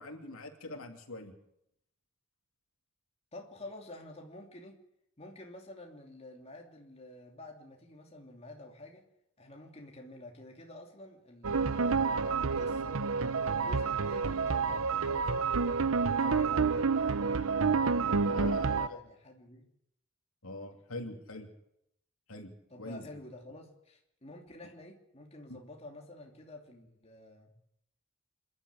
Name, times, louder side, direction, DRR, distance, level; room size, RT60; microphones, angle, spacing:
voice 1, 0.0-1.3 18.3-19.0 20.4-21.5 22.3-23.1 25.5-25.6, left 2 dB, 90° left, 3 dB, 3.0 m, -43 dB
voice 2, 3.3-4.8 5.2-9.0 9.4-13.0 13.4-15.8 16.2-17.5 18.0-19.7 22.7-27.5, left 1 dB, 30° left, 1 dB, 2.9 m, -49 dB
sound 1, 11.4-18.9, right 5 dB, 80° right, 0.8 m, -29 dB
27.0 x 12.0 x 8.2 m, 0.78 s
head